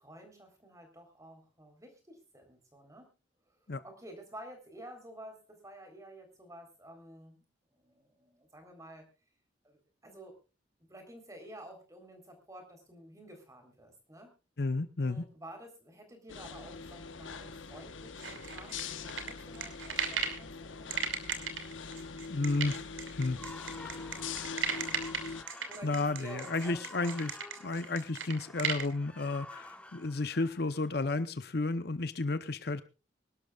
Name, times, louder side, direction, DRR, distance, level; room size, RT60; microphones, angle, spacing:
voice 1, 0.0-3.1 3.5-7.4 7.7-9.1 9.6-10.4 10.9-14.4 15.0-21.0 25.7-27.2, right 1 dB, 15° right, 4 dB, 3.8 m, -51 dB
voice 2, 14.6-15.2 22.3-22.8 23.1-23.4 23.8-24.1 25.8-27.3 27.6-32.8, left 3 dB, 55° left, 12 dB, 0.7 m, -32 dB
sound 1, 16.3-25.4, left 5 dB, 90° left, 1.1 m, -43 dB
sound 2, 18.2-20.4 20.9-28.9, right 6 dB, 90° right, 2.7 m, -36 dB
sound 3, 23.2-31.3, left 2 dB, 5° left, 1.2 m, -50 dB
24.5 x 12.0 x 2.4 m, 0.31 s
head